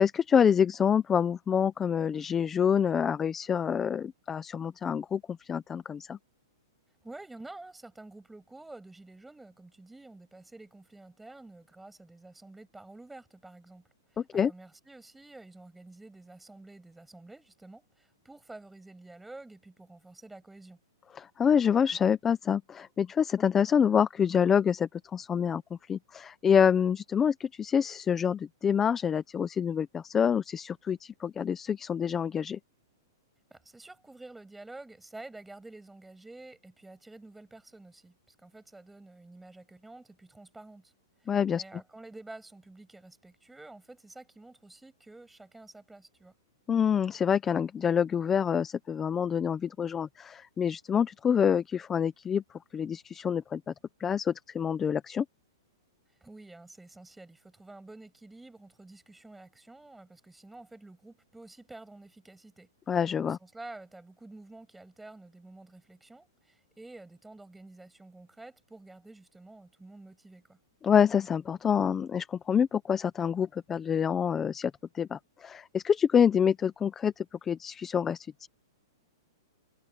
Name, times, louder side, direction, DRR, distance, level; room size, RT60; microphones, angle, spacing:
voice 1, 0.0-6.2 14.3-14.5 21.2-25.6 25.9-32.6 41.3-41.6 46.7-52.4 52.7-53.6 54.0-55.2 62.9-63.4 70.8-78.5, left 7 dB, 10° left, 0.5 m, -27 dB
voice 2, 7.0-20.8 33.5-40.9 41.2-46.3 56.2-70.6, right 2 dB, 5° right, 6.4 m, -50 dB
hypercardioid pair, 170°, 2 cm